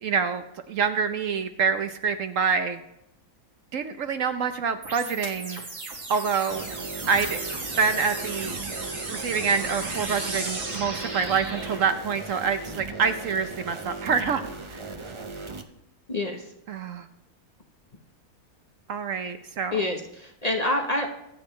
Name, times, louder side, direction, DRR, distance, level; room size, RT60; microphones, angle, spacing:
voice 1, 0.0-2.8 3.7-5.6 6.1-6.6 7.1-7.4 7.8-8.6 9.1-14.4 14.7-14.8 16.7-17.1 18.9-19.7, right 5 dB, 65° right, 9 dB, 1.0 m, -26 dB
sound 1, 4.8-11.8, right 3 dB, 90° right, 2.7 m, -35 dB
sound 2, 6.5-15.6, right 3 dB, 35° right, 0.5 m, -38 dB
voice 2, 16.1-16.5 19.7-21.1, left 2 dB, 30° left, 2 dB, 1.0 m, -27 dB
24.0 x 8.1 x 3.2 m, 0.82 s
omnidirectional pair, 1.6 m